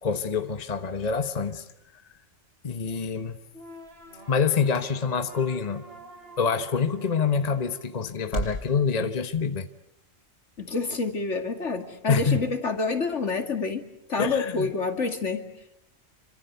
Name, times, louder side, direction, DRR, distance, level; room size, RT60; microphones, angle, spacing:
voice 1, 0.0-1.7 1.9-2.0 2.6-3.4 4.3-5.8 6.4-9.7 12.1-12.4 14.2-14.7, left 5 dB, 35° left, 9 dB, 1.2 m, -26 dB
sound 1, 2.4-8.7, right 1 dB, 65° right, 6.8 m, -41 dB
sound 2, 3.5-8.6, right 1 dB, 50° right, 3.4 m, -48 dB
voice 2, 10.6-13.8 14.1-15.4, left 4 dB, 65° left, 7 dB, 2.7 m, -28 dB
27.5 x 25.5 x 8.2 m, 0.78 s
omnidirectional pair, 1.3 m